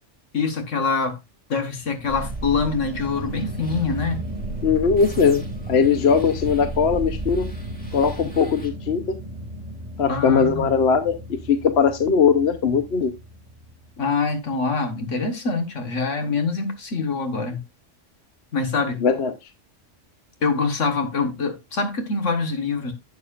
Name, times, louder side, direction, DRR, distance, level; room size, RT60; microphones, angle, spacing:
voice 1, 0.3-1.2 1.5-4.2 10.1-10.7 14.0-17.6 18.5-19.0 20.4-22.9, left 4 dB, 80° left, 1.9 m, -25 dB
sound 1, 1.7-14.0, right 1 dB, 35° right, 2.2 m, -35 dB
sound 2, 2.1-8.7, right 3 dB, 5° left, 2.3 m, -37 dB
voice 2, 4.6-7.5 7.9-9.0 10.0-11.2 11.5-13.1 19.0-19.3, left 6 dB, 60° left, 1.1 m, -19 dB
11.5 x 8.1 x 2.5 m
omnidirectional pair, 1.3 m